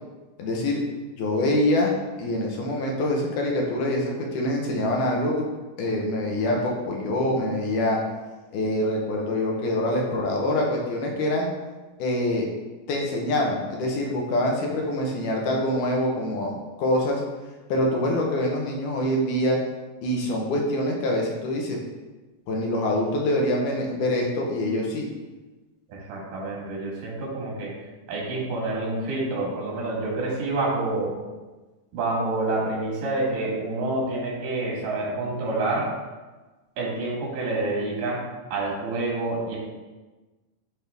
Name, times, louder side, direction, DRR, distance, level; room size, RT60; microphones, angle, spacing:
voice 1, 0.4-0.8 1.2-1.9 2.2-5.5 5.8-8.0 8.5-11.5 12.0-12.5 12.9-17.2 17.7-19.6 20.0-21.8 22.5-25.1, left 1 dB, 75° left, -1 dB, 2.5 m, -25 dB
voice 2, 25.9-27.7 28.1-31.2 31.9-35.9 36.8-39.6, right 2 dB, 90° right, -4 dB, 3.4 m, -28 dB
10.0 x 3.5 x 3.5 m, 1.2 s
omnidirectional pair, 3.7 m